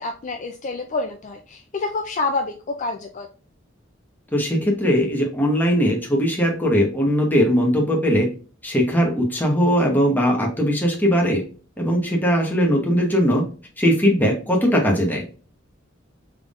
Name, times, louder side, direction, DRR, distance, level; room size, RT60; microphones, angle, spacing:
voice 1, 0.0-3.3, left 3 dB, 40° left, 4 dB, 0.4 m, -28 dB
voice 2, 4.3-8.3 8.6-11.4 11.8-13.4 13.8-15.2, equal, 10° left, 0 dB, 1.1 m, -19 dB
3.5 x 3.5 x 2.4 m, 0.38 s
head